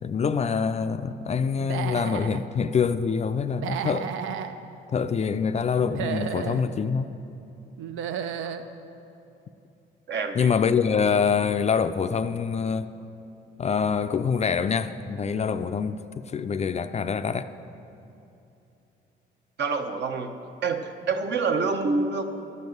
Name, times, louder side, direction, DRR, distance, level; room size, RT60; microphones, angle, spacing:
voice 1, 0.0-4.1 4.9-7.1 10.3-12.9 13.6-16.0 16.3-17.5, left 6 dB, 35° left, 11 dB, 0.4 m, -25 dB
Human voice / Animal, 1.6-2.4 3.5-4.5 5.8-6.6 7.8-8.6, right 8 dB, 80° right, 0.6 m, -32 dB
voice 2, 10.1-10.6 19.6-20.4 20.6-22.2, right 4 dB, 60° right, 6 dB, 0.9 m, -27 dB
12.0 x 5.4 x 7.8 m, 2.8 s
cardioid pair, 90°, 20 cm